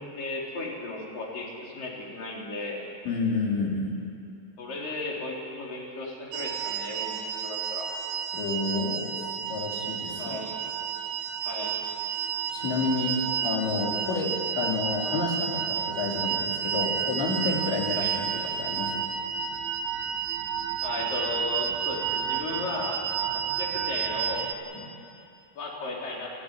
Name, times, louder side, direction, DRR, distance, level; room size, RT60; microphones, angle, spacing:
voice 1, 0.0-2.9 4.6-7.9 10.2-10.5 11.4-11.7 18.0-18.1 20.8-23.1 23.6-24.5 25.5-26.3, left 2 dB, 50° left, -3 dB, 5.1 m, -35 dB
voice 2, 3.1-4.0 8.3-9.1 9.5-10.4 12.5-18.1 18.3-19.0 24.7-24.9, left 3 dB, 70° left, -1 dB, 5.2 m, -29 dB
sound 1, 6.3-24.5, right 8 dB, 85° right, 3.5 m, -31 dB
30.0 x 12.5 x 9.8 m, 2.5 s
omnidirectional pair, 5.5 m